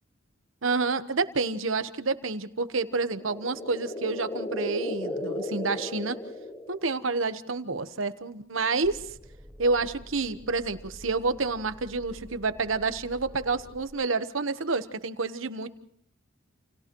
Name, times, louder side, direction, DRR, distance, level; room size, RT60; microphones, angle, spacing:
voice 1, 0.6-6.2 6.7-9.1 9.6-15.7, right 3 dB, 80° right, 11 dB, 1.1 m, -29 dB
sound 1, 2.9-7.1, left 1 dB, 25° left, 1.0 m, -35 dB
sound 2, 8.8-13.9, equal, 10° right, 0.9 m, -48 dB
29.5 x 28.5 x 3.1 m, 0.62 s
head